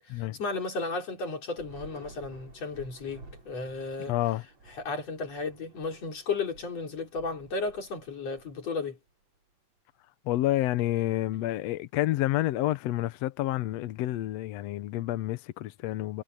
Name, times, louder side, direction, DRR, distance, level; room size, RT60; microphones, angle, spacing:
voice 1, 0.0-4.1 4.8-9.0, left 4 dB, 50° left, 5.2 m, -34 dB
Thunder / Rain, 1.5-9.1, right 3 dB, 50° right, 7.1 m, -52 dB
voice 2, 4.1-4.4 10.3-16.2, left 15 dB, 75° left, 1.5 m, -29 dB
omnidirectional pair, 3.9 m